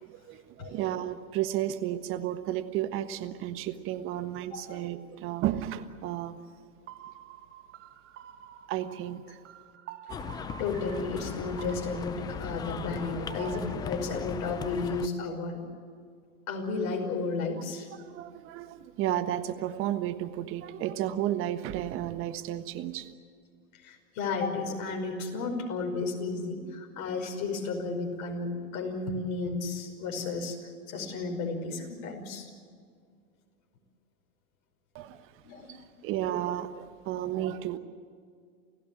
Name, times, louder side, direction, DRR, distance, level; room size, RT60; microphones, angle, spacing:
voice 1, 0.0-6.4 8.7-9.4 18.0-23.1 34.9-35.3 35.7-37.8, right 12 dB, 30° right, 10 dB, 1.4 m, -33 dB
sound 1, 6.9-13.7, right 12 dB, 55° right, 2.0 m, -48 dB
sound 2, 10.1-15.1, left 7 dB, 10° left, 0.5 m, -38 dB
voice 2, 10.6-15.6 16.5-17.9 23.8-30.6 30.9-32.5 35.4-35.7, left 3 dB, 40° left, 2 dB, 5.5 m, -33 dB
29.0 x 16.0 x 8.7 m, 2.1 s
hypercardioid pair, 130°, 43 cm